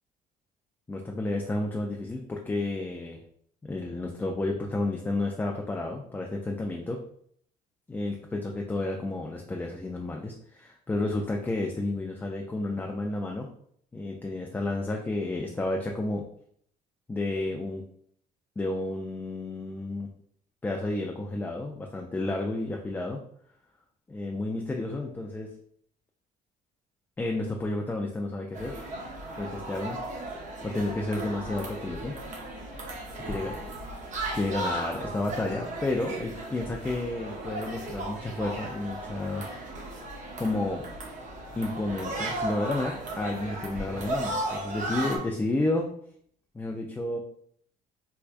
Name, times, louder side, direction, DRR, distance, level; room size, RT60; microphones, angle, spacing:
voice 1, 0.9-3.2 3.6-7.0 7.9-13.5 13.9-16.2 17.1-17.8 18.6-20.1 20.6-23.2 24.1-25.5 27.2-28.8 29.4-30.0 30.6-32.1 33.1-33.5 34.3-39.4 40.4-40.8 41.6-45.9 46.5-47.2, left 2 dB, 10° left, 1 dB, 0.4 m, -31 dB
sound 1, 28.5-45.2, right 1 dB, 45° right, 0.9 m, -36 dB
4.5 x 2.2 x 2.5 m, 0.65 s
cardioid pair, 110°, 17 cm